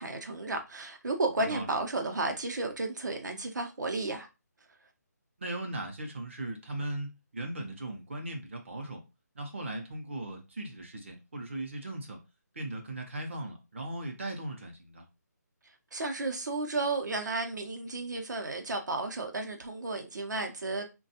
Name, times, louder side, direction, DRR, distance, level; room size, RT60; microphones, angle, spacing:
voice 1, 0.0-4.3 15.9-20.8, right 2 dB, 85° right, 0.7 m, -33 dB
voice 2, 5.4-9.0 9.3-12.2 12.5-15.0, right 1 dB, 45° right, 0.6 m, -38 dB
3.3 x 2.3 x 2.7 m
hypercardioid pair, 175°, 10 cm